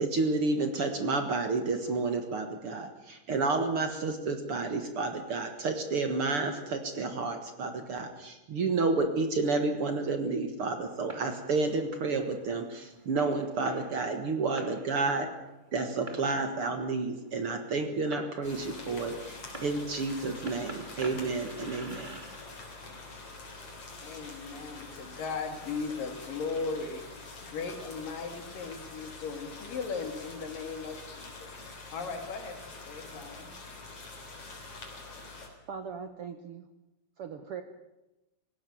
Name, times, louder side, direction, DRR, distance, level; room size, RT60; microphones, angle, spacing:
voice 1, 0.0-15.3 15.7-22.2, right 3 dB, 50° right, 6 dB, 2.1 m, -30 dB
Fireworks, 10.8-25.6, right 2 dB, 15° right, 2.3 m, -50 dB
sound 1, 18.4-35.5, left 3 dB, 45° left, 4.7 m, -46 dB
voice 2, 24.0-27.1 27.4-31.5 31.9-33.6, left 4 dB, 75° left, 6 dB, 4.0 m, -37 dB
voice 3, 35.7-36.7 37.2-37.6, right 6 dB, 65° right, 8 dB, 1.5 m, -40 dB
19.0 x 17.0 x 9.3 m, 0.97 s
omnidirectional pair, 4.0 m